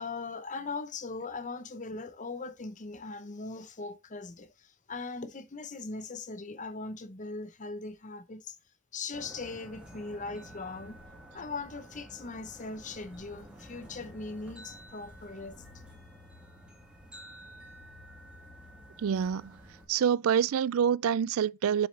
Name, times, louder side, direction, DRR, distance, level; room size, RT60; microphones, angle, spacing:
voice 1, 0.0-8.6 8.9-11.0 11.3-15.6, left 3 dB, 35° left, 0.8 m, -40 dB
sound 1, 9.1-19.9, equal, 5° right, 2.4 m, -50 dB
voice 2, 19.0-19.6 19.9-21.9, right 8 dB, 75° right, 0.3 m, -26 dB
7.1 x 6.2 x 3.3 m
head